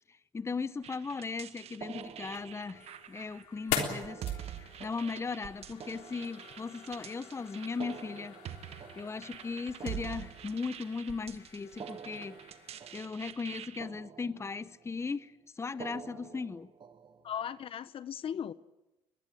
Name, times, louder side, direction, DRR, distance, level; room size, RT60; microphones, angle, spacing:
voice 1, 0.1-8.4 9.0-12.5 12.9-16.7, left 4 dB, 25° left, 0.9 m, -38 dB
sound 1, 0.8-13.8, right 10 dB, 60° right, 1.4 m, -46 dB
sound 2, 1.8-3.0 3.7-7.0 7.7-11.0 11.7-13.5 13.8-14.9 15.7-17.5, right 6 dB, 40° right, 1.5 m, -49 dB
sound 3, 2.0-13.0, left 8 dB, 85° left, 3.5 m, -43 dB
voice 2, 17.2-18.5, left 8 dB, 50° left, 0.9 m, -37 dB
22.5 x 20.0 x 9.0 m
supercardioid pair, 75°, 12 cm